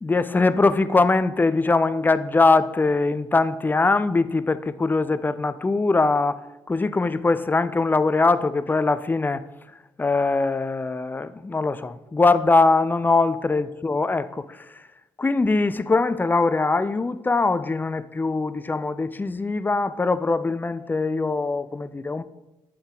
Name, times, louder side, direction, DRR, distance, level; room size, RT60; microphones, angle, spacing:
voice 1, 0.0-6.4 6.7-9.4 10.0-14.9 15.2-22.2, left 3 dB, 15° left, 0.3 m, -22 dB
7.0 x 3.6 x 3.8 m
hypercardioid pair, 50°, 11 cm